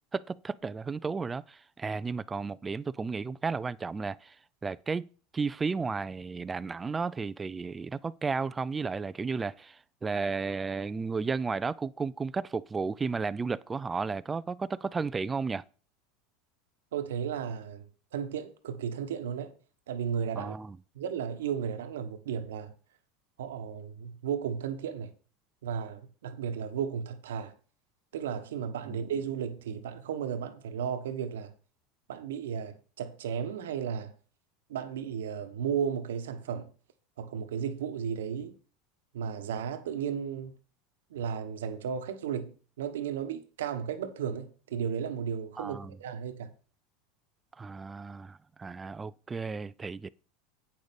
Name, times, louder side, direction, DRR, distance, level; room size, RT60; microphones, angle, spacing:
voice 1, 0.1-4.3 4.6-5.1 5.3-15.6 20.4-20.8 28.9-29.0 45.6-45.9 47.6-50.1, right 4 dB, 20° right, 0.5 m, -33 dB
voice 2, 16.9-19.5 19.9-20.5 20.9-22.7 23.4-25.1 25.6-27.5 28.1-31.5 32.1-34.1 34.7-36.7 37.2-38.6 39.1-40.5 41.1-46.5, right 7 dB, 85° right, 1.2 m, -34 dB
8.6 x 6.3 x 5.3 m
hypercardioid pair, 100°, 0 cm